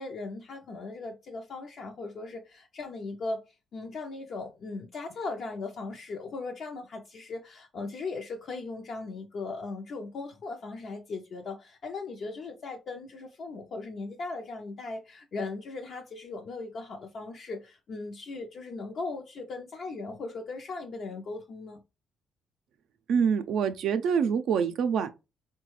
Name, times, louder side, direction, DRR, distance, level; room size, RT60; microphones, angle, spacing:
voice 1, 0.0-21.8, left 3 dB, 60° left, 0.5 m, -38 dB
voice 2, 23.1-25.1, right 7 dB, 75° right, 0.4 m, -25 dB
3.8 x 2.2 x 3.0 m
cardioid pair, 90°, 0 cm